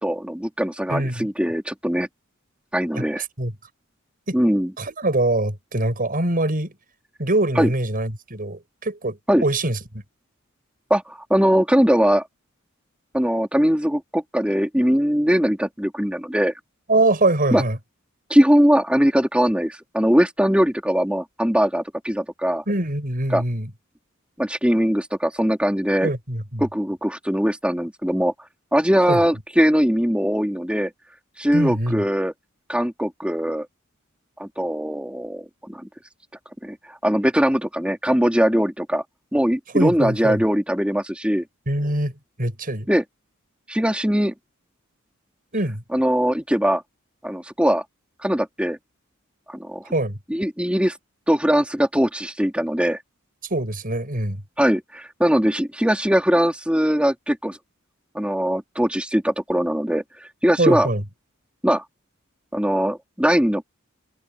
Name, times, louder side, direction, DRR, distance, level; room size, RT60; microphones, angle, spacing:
voice 1, 0.0-2.1 2.7-3.2 4.3-4.7 7.6-7.7 9.3-9.4 10.9-12.2 13.1-16.5 17.5-17.6 18.3-22.6 23.3-23.4 24.4-26.1 26.6-28.3 28.7-30.9 31.4-32.3 32.7-33.7 34.4-35.9 36.6-39.0 39.3-41.4 42.9-43.0 43.7-44.3 45.9-46.8 47.2-47.8 48.2-48.8 49.5-49.8 50.3-51.0 51.3-53.0 54.6-57.6 58.1-60.0 60.4-60.9 61.6-61.8 62.5-63.6, equal, 5° right, 2.8 m, -21 dB
voice 2, 0.9-1.3 2.9-3.5 4.3-4.4 4.8-6.7 7.2-10.0 16.9-17.8 22.7-23.7 26.0-26.6 29.1-29.2 31.5-32.0 39.7-40.4 41.7-42.9 45.5-45.8 49.9-50.2 53.5-54.4 60.6-61.0, right 1 dB, 45° right, 7.1 m, -23 dB
head